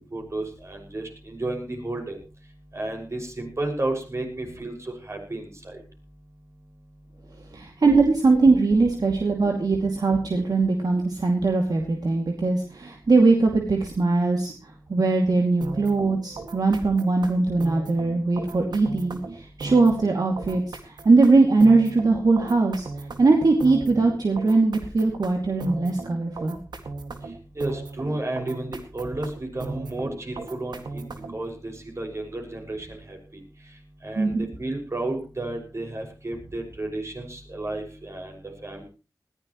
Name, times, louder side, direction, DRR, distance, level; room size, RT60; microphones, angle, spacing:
voice 1, 0.1-2.2 2.7-5.8 27.6-31.0 31.3-33.2 34.0-38.8, right 2 dB, 40° right, 2 dB, 6.1 m, -32 dB
voice 2, 7.5-14.5 14.9-22.9 23.2-26.6 34.2-34.5, right 3 dB, 65° right, 2 dB, 2.5 m, -21 dB
sound 1, 15.6-31.5, right 3 dB, 90° right, 2.1 m, -37 dB
20.0 x 15.5 x 3.1 m, 0.34 s
cardioid pair, 60°, 7 cm